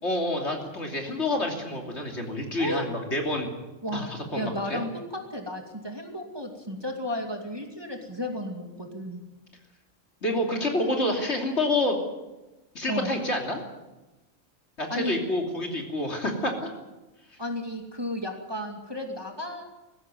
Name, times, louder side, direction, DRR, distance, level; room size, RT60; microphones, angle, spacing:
voice 1, 0.0-3.5 3.9-4.8 10.2-12.0 12.7-13.6 14.8-16.7, left 1 dB, 55° left, 2 dB, 3.4 m, -28 dB
voice 2, 2.6-2.9 3.8-9.2 12.9-13.2 14.9-15.2 17.4-19.9, left 1 dB, 20° right, 2 dB, 2.4 m, -33 dB
20.0 x 15.5 x 9.2 m, 1.1 s
omnidirectional pair, 1.4 m